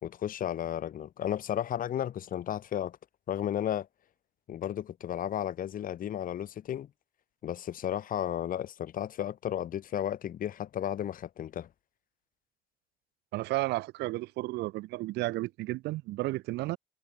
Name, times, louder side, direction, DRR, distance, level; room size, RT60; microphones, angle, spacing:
voice 1, 0.0-3.0 3.3-3.9 4.5-6.9 7.4-11.7, left 10 dB, 55° left, 2.8 m, -33 dB
voice 2, 13.3-16.8, right 19 dB, 85° right, 3.9 m, -32 dB
cardioid pair, 110°, 17 cm